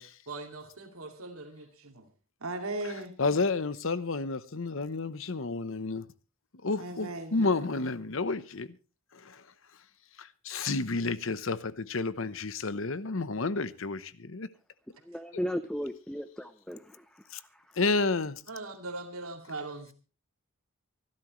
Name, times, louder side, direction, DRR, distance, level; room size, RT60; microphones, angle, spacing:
voice 1, 0.0-2.0 2.4-3.1 6.8-7.8 18.5-19.9, right 2 dB, 85° right, 2.4 m, -39 dB
voice 2, 3.2-6.1 6.6-8.7 9.1-9.4 10.2-14.5 17.3-17.4 17.8-18.4, left 3 dB, 70° left, 0.9 m, -31 dB
voice 3, 15.0-17.8, equal, 5° left, 0.7 m, -37 dB
24.5 x 12.0 x 3.1 m
head